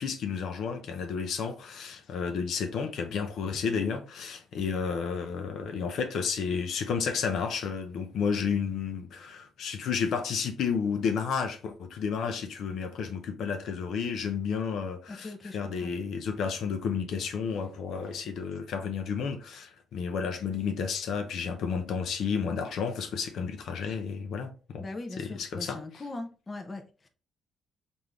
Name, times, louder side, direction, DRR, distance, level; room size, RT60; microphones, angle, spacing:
voice 1, 0.0-24.8 25.2-25.8, left 6 dB, 70° left, 0.5 m, -31 dB
voice 2, 15.1-15.9 24.8-27.1, left 2 dB, 25° left, 0.5 m, -40 dB
3.4 x 2.6 x 3.0 m
cardioid pair, 90°, 0 cm